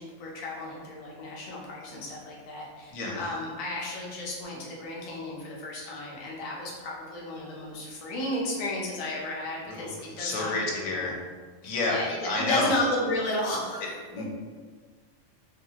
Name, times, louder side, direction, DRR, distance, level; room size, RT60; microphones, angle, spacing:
voice 1, 0.0-10.5 10.8-11.1 11.6-14.0, left 1 dB, 45° left, -4 dB, 0.4 m, -33 dB
voice 2, 10.2-11.2 11.6-12.7 14.1-14.2, left 2 dB, 90° left, -2 dB, 1.0 m, -29 dB
2.6 x 2.3 x 2.8 m, 1.5 s
omnidirectional pair, 1.4 m